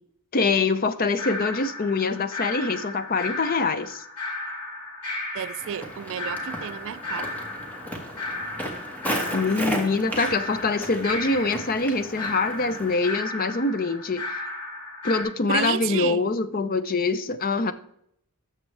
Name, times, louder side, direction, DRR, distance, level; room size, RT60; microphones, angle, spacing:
voice 1, 0.3-4.0 9.3-14.2 15.0-17.7, left 3 dB, 40° left, 0.6 m, -24 dB
sound 1, 1.2-15.2, left 2 dB, 80° left, 3.4 m, -35 dB
voice 2, 5.3-7.3 15.4-16.2 17.7-17.8, right 9 dB, 60° right, 0.3 m, -31 dB
Walk footsteps, 5.6-13.0, equal, 5° left, 1.5 m, -34 dB
13.5 x 6.7 x 3.3 m
head